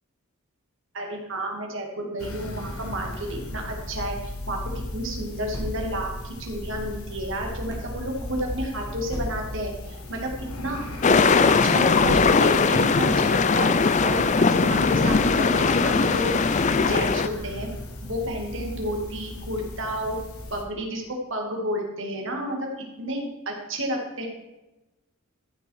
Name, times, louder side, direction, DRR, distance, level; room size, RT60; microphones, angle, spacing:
voice 1, 0.9-10.3 10.6-10.8 11.6-13.7 14.0-16.3 16.9-17.7 18.0-20.2 20.5-22.7 23.0-24.3, right 1 dB, 60° right, 1 dB, 2.5 m, -31 dB
sound 1, 2.2-20.6, left 1 dB, 85° left, 1.9 m, -36 dB
sound 2, 5.5-6.2 7.0-8.0 9.1-9.7 10.6-10.7 11.0-11.1 12.0-12.7 13.5-13.8 15.0-15.7, equal, 15° left, 2.1 m, -36 dB
sound 3, 11.0-17.3, left 4 dB, 35° left, 0.4 m, -20 dB
14.5 x 6.0 x 4.9 m, 1.0 s
head